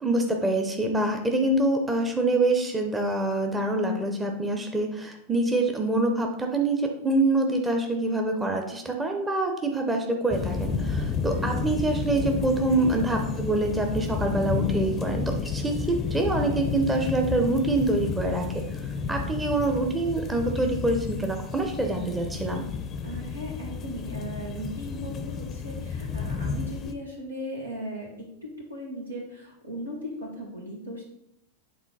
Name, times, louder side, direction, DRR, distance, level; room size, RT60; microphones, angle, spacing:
voice 1, 0.0-18.6 19.1-22.7, right 2 dB, 10° right, 3 dB, 0.9 m, -25 dB
sound 1, 10.3-26.9, left 5 dB, 25° left, 0.6 m, -31 dB
voice 2, 12.7-13.4 23.0-28.1 28.4-31.0, equal, 80° right, -2 dB, 2.0 m, -37 dB
8.6 x 3.9 x 4.0 m, 0.80 s
figure-of-eight pair, 90°, 0 cm